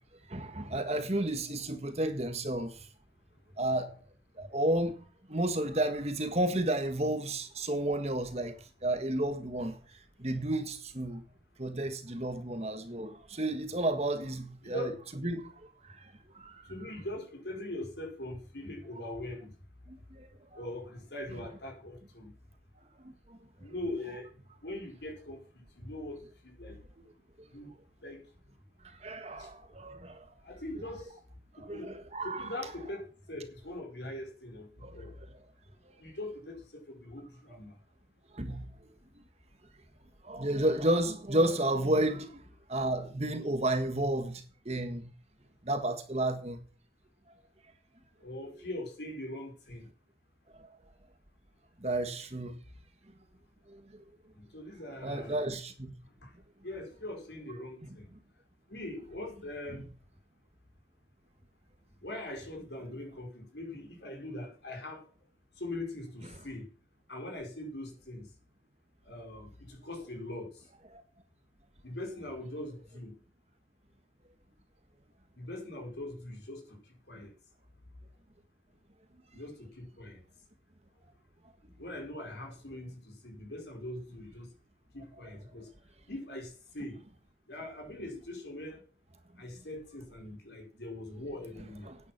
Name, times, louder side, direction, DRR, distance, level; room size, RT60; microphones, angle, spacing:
voice 1, 0.3-2.9 3.6-3.9 4.4-5.0 5.3-11.2 11.6-14.9 15.2-15.5 15.8-16.7 19.9-20.6 23.0-23.4 27.0-27.1 29.0-30.2 31.6-32.5 34.8-35.3 35.8-35.9 38.3-38.7 40.2-42.4 42.7-45.1 45.6-46.6 50.6-50.7 51.8-52.6 53.7-54.0 55.0-55.9 70.9-71.0 91.8-92.0, right 1 dB, 35° right, 1.6 m, -32 dB
voice 2, 14.6-15.3 16.7-19.5 20.5-22.3 23.6-24.3 24.6-26.8 27.5-27.7 28.0-28.2 29.4-29.5 30.4-31.2 31.6-31.9 32.2-34.7 34.9-35.1 36.0-37.7 48.2-49.9 54.3-55.5 56.2-56.3 56.6-58.1 58.7-59.8 62.0-65.1 65.6-66.7 67.1-68.3 69.1-70.5 71.8-73.1 75.4-76.8 77.1-77.3 79.3-80.2 81.8-84.5 84.9-85.7 86.1-87.0 87.5-88.8 89.4-91.9, left 1 dB, 70° left, 5.0 m, -41 dB
11.0 x 9.7 x 6.0 m
head